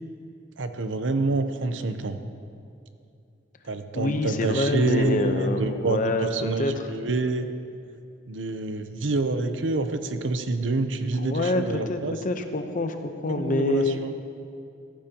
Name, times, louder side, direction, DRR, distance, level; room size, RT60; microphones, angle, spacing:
voice 1, 0.6-2.2 3.6-7.5 8.3-12.2 13.3-14.1, right 3 dB, 85° right, 9 dB, 0.7 m, -27 dB
voice 2, 3.9-6.7 11.2-14.0, left 2 dB, 45° left, 6 dB, 0.8 m, -26 dB
15.0 x 14.5 x 2.9 m, 2.5 s
head